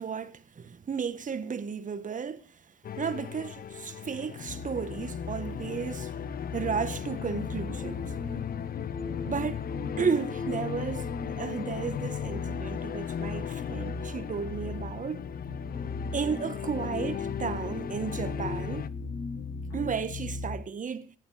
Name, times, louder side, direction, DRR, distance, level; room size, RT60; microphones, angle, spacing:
voice 1, 0.0-2.6 3.0-6.1 6.5-8.1 9.3-9.6 10.0-15.2 16.1-18.9 19.7-21.1, right 6 dB, 40° right, 1.6 m, -33 dB
sound 1, 2.8-18.9, left 9 dB, 50° left, 0.7 m, -37 dB
sound 2, 4.5-20.6, left 3 dB, 75° left, 4.2 m, -38 dB
16.5 x 11.5 x 5.1 m
cardioid pair, 90°, 20 cm